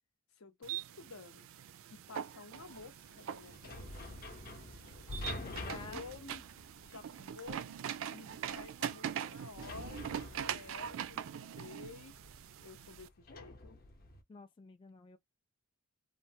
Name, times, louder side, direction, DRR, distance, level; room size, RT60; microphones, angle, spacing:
voice 1, 0.3-1.5 1.9-4.1 5.1-6.4 6.8-12.2 12.6-13.8, left 4 dB, 75° left, 0.7 m, -52 dB
sound 1, 0.6-13.1, right 9 dB, 65° right, 0.3 m, -43 dB
Brick and metal doors, 2.5-14.2, left 2 dB, 45° left, 0.7 m, -48 dB
voice 2, 5.4-6.0 14.3-15.2, left 4 dB, 20° left, 0.3 m, -51 dB
3.2 x 2.0 x 2.7 m
head